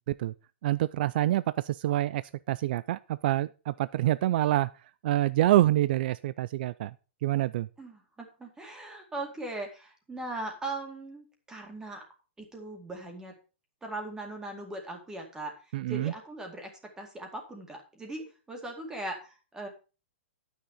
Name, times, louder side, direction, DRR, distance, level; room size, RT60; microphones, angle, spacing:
voice 1, 0.6-2.2 2.5-4.7 5.0-6.9 7.2-7.7 15.7-16.1, right 14 dB, 55° right, 0.3 m, -26 dB
voice 2, 7.8-12.0 12.4-13.3 13.8-19.7, right 2 dB, 10° right, 2.2 m, -39 dB
9.7 x 6.5 x 4.9 m
hypercardioid pair, 140°, 6 cm